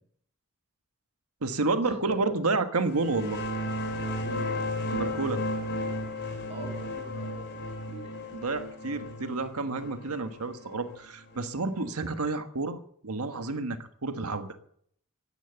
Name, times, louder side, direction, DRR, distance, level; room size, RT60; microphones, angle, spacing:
voice 1, 1.4-3.4 4.9-5.4 8.3-14.5, right 3 dB, 80° right, 8 dB, 1.4 m, -30 dB
sound 1, 2.8-12.2, left 1 dB, 55° left, 3.4 m, -34 dB
voice 2, 6.5-8.0, right 2 dB, 30° right, 3 dB, 7.6 m, -42 dB
16.0 x 10.5 x 8.0 m, 0.66 s
head